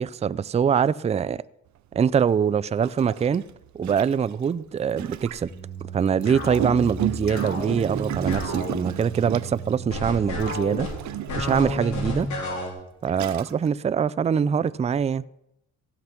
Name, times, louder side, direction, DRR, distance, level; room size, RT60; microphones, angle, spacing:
voice 1, 0.0-1.4 2.0-3.4 3.7-5.5 5.9-10.9 11.4-12.3 13.0-15.2, right 7 dB, 20° right, 0.4 m, -23 dB
Gurgling, 1.9-2.0 2.8-5.5 6.2-9.8 10.4-11.9 12.6-12.7 13.1-13.7, right 13 dB, 70° right, 0.8 m, -33 dB
sound 1, 5.5-12.7, left 1 dB, 70° left, 3.9 m, -32 dB
16.0 x 5.9 x 5.9 m
cardioid pair, 90°, 30 cm